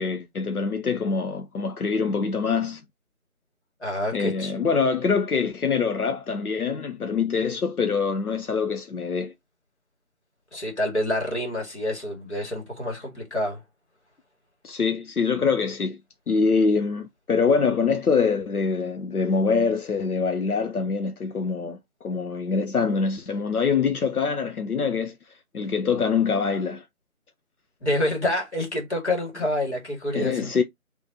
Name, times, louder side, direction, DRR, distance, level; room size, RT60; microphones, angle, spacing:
voice 1, 0.0-2.8 4.1-9.3 14.6-16.0 16.3-25.2 25.5-26.8 30.1-30.6, left 5 dB, 85° left, 0.8 m, -24 dB
voice 2, 3.8-4.5 10.5-13.6 27.8-30.5, left 1 dB, 50° left, 2.3 m, -27 dB
5.3 x 3.2 x 2.9 m
figure-of-eight pair, 170°, 43 cm